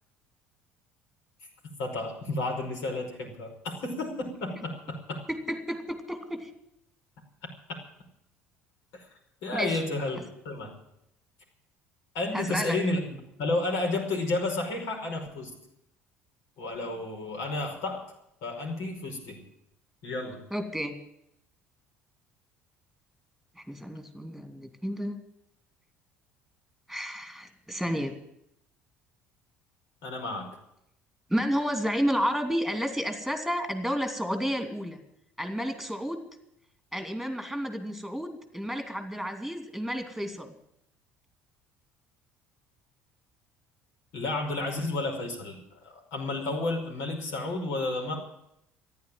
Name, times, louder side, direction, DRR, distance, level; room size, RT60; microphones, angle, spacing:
voice 1, 1.8-5.3 8.9-9.1 9.4-10.8 12.1-15.5 16.6-18.0 18.4-19.4 20.0-20.4 30.0-30.5 44.1-48.2, left 2 dB, 65° left, 1 dB, 5.4 m, -31 dB
voice 2, 5.5-6.5 9.5-9.8 12.3-12.8 20.5-21.0 23.6-25.2 26.9-28.1 31.3-35.0 35.4-36.2 36.9-40.5, equal, ahead, 7 dB, 2.8 m, -31 dB
14.5 x 10.5 x 9.3 m, 0.77 s
figure-of-eight pair, 60°, 6 cm